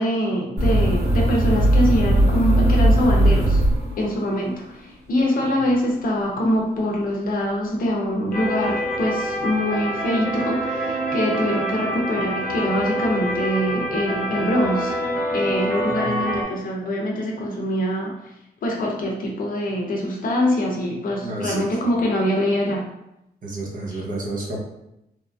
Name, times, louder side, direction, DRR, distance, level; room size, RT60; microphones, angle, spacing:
voice 1, 0.0-3.6 4.0-15.0 15.3-18.1 18.6-22.8, equal, 55° left, -1 dB, 0.5 m, -24 dB
sound 1, 0.6-4.3, right 1 dB, 85° right, 1.4 m, -18 dB
sound 2, 8.3-16.4, equal, 5° left, 1.2 m, -26 dB
voice 2, 15.9-16.3 21.2-21.9 23.4-24.6, right 1 dB, 50° right, -2 dB, 0.7 m, -31 dB
2.9 x 2.5 x 2.2 m, 0.85 s
wide cardioid pair, 165°, 17 cm